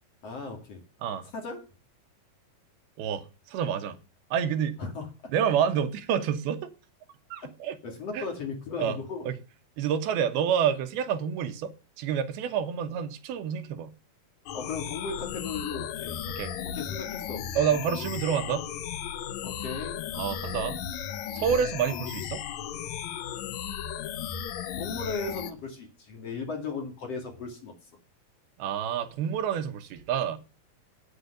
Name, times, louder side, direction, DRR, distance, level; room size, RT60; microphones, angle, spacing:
voice 1, 0.2-0.8 1.3-1.6 4.8-5.1 7.8-9.2 14.5-16.2 16.7-17.5 19.4-20.0 24.8-27.7, left 4 dB, 45° left, 3.0 m, -36 dB
voice 2, 3.0-4.0 4.3-4.8 5.3-6.7 7.3-7.8 8.1-8.3 8.8-9.0 9.3-9.4 9.8-13.9 16.3-16.5 17.6-18.7 20.1-20.8 21.3-22.4 28.6-30.4, right 8 dB, 80° right, 2.9 m, -28 dB
sound 1, 14.5-25.5, left 9 dB, 80° left, 1.6 m, -35 dB
9.0 x 8.0 x 6.7 m
omnidirectional pair, 4.4 m